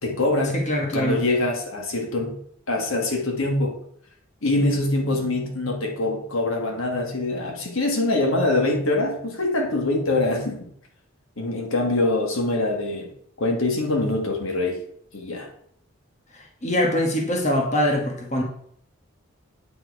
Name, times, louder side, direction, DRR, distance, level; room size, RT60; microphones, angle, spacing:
voice 1, 0.0-0.6 0.9-2.4 2.7-3.8 4.4-10.7 11.4-13.1 13.4-14.8 15.1-15.5, left 2 dB, 75° left, 1.5 m, -24 dB
voice 2, 0.5-1.2 16.3-18.4, left 1 dB, 35° left, 1.2 m, -23 dB
8.6 x 4.5 x 4.6 m
head